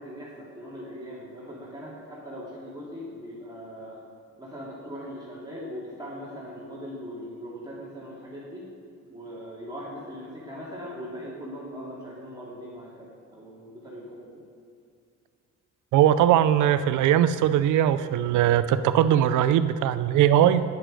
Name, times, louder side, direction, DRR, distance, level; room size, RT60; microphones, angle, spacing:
voice 1, 0.0-4.0 4.4-8.6 9.1-14.4, equal, 15° right, -7 dB, 2.2 m, -40 dB
voice 2, 15.9-20.6, right 11 dB, 80° right, 13 dB, 0.5 m, -20 dB
9.4 x 7.6 x 5.0 m, 2.3 s
cardioid pair, 90°, 30 cm